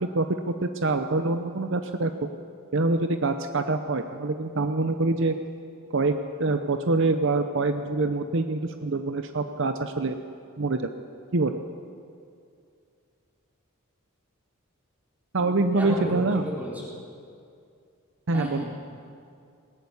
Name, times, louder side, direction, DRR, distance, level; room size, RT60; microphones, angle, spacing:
voice 1, 0.0-2.3 2.7-5.4 5.9-10.2 10.6-10.9 11.3-11.6 15.3-16.4 18.3-18.6, right 3 dB, 60° right, 8 dB, 0.8 m, -25 dB
voice 2, 15.8-16.9 18.3-18.6, equal, 10° right, -5 dB, 4.4 m, -32 dB
19.0 x 19.0 x 7.1 m, 2.4 s
head